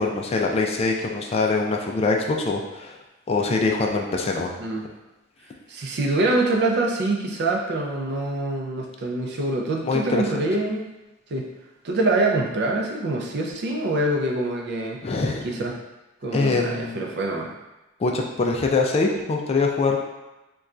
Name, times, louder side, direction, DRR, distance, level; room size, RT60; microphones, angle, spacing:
voice 1, 0.0-3.0 3.3-4.6 9.8-10.2 15.0-15.5 16.3-17.0 18.0-20.0, left 3 dB, 30° left, 1 dB, 0.3 m, -23 dB
voice 2, 5.7-10.9 11.3-11.5 11.8-15.0 15.4-15.8 16.2-17.5, right 2 dB, 55° right, 1 dB, 0.4 m, -25 dB
4.1 x 2.3 x 2.4 m, 1.0 s
head